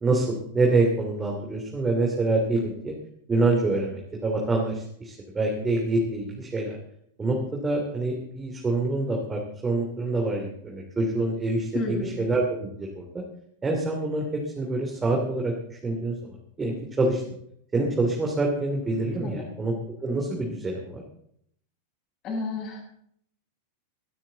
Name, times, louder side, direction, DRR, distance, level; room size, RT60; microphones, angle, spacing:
voice 1, 0.0-2.9 3.3-6.8 7.2-13.2 13.6-14.3 14.6-17.2 17.7-19.7 20.0-21.0, right 2 dB, 15° right, 0 dB, 2.9 m, -26 dB
voice 2, 11.7-12.2 19.2-19.5 22.2-22.8, left 3 dB, 35° left, -1 dB, 7.9 m, -31 dB
20.5 x 12.5 x 4.0 m, 0.69 s
figure-of-eight pair, 90°, 0 cm